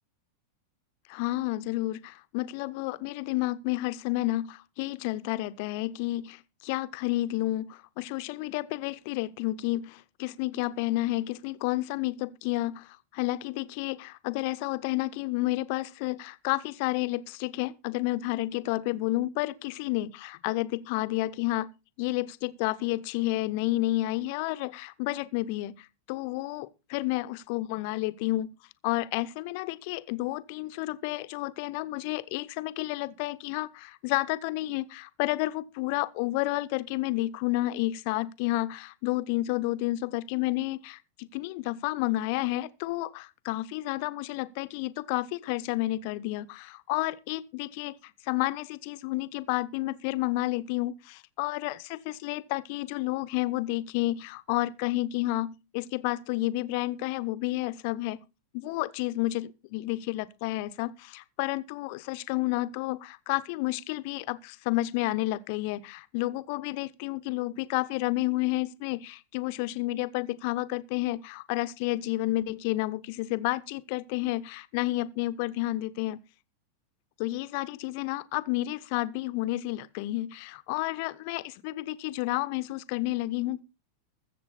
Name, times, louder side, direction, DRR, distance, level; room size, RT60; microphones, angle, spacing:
voice 1, 1.1-21.7 22.0-28.5 28.8-47.9 48.3-58.2 58.5-76.2 77.2-83.6, left 18 dB, 45° left, 0.9 m, -31 dB
21.5 x 7.6 x 4.2 m
figure-of-eight pair, 90°, 0 cm